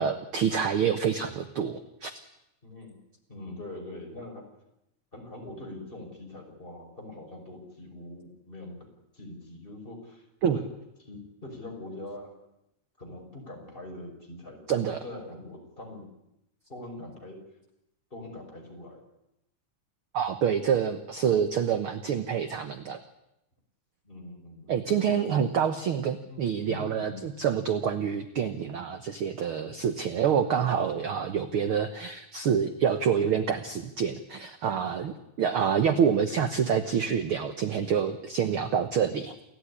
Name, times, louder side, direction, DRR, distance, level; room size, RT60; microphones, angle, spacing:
voice 1, 0.0-2.1 10.4-10.6 14.7-15.0 20.1-23.0 24.7-39.3, right 7 dB, 55° right, 9 dB, 1.6 m, -27 dB
voice 2, 2.6-3.0 3.3-4.5 5.1-10.2 10.5-10.6 11.0-12.3 13.0-16.1 16.7-17.4 18.1-19.0 24.0-25.5 26.3-27.5, left 2 dB, 15° left, 1 dB, 5.7 m, -43 dB
29.0 x 15.5 x 9.9 m, 0.87 s
omnidirectional pair, 3.4 m